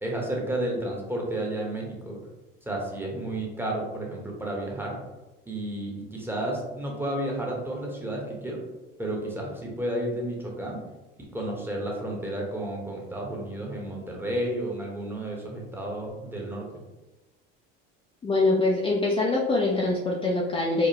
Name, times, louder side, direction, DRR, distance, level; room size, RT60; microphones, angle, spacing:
voice 1, 0.0-2.2 2.7-5.0 5.5-8.6 9.0-10.8 11.2-16.6, right 1 dB, 5° right, -2 dB, 1.0 m, -32 dB
voice 2, 18.2-20.9, left 2 dB, 20° left, -3 dB, 0.5 m, -24 dB
4.9 x 2.2 x 2.8 m, 1.1 s
supercardioid pair, 90°, 30 cm